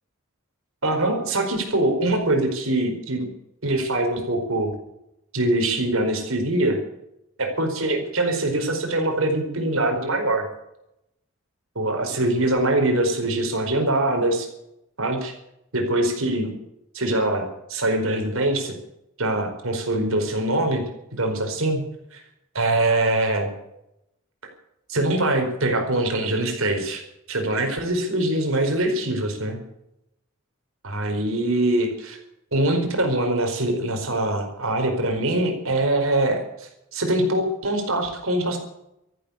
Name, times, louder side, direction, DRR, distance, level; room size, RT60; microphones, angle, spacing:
voice 1, 0.8-3.3 3.6-4.7 5.3-6.8 7.4-10.5 11.7-14.5 15.0-15.3 15.7-16.5 16.9-18.7 19.2-20.8 21.1-21.8 22.1-22.2 22.5-23.5 24.9-27.0 27.3-29.6 30.8-32.2 32.5-38.6, right 1 dB, 80° right, 4 dB, 4.7 m, -23 dB
14.0 x 12.0 x 8.4 m, 0.83 s
head